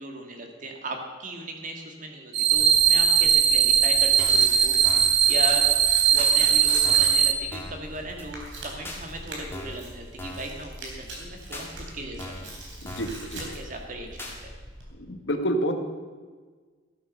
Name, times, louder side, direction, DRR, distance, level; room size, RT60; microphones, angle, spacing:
voice 1, 0.0-5.7 6.1-12.5 13.2-14.5, right 1 dB, 45° right, 3 dB, 2.0 m, -37 dB
sound 1, 2.3-7.3, right 8 dB, 60° right, 0.8 m, -19 dB
Tearing, 2.5-14.9, right 1 dB, 85° right, 3.7 m, -41 dB
sound 2, 4.2-4.5 4.8-5.2 5.5-5.6 6.2-6.3 6.8-7.2 7.5-7.8 8.2-8.3 8.8-9.0 9.5-9.8 10.2-10.5 10.8-10.9 11.5-11.7 12.2-12.5 12.8-13.2 13.5-13.6 14.2-14.4, left 1 dB, 10° left, 2.0 m, -39 dB
voice 2, 12.8-13.4 15.0-15.7, equal, 70° left, 5 dB, 1.5 m, -28 dB
14.5 x 8.8 x 6.5 m, 1.5 s
head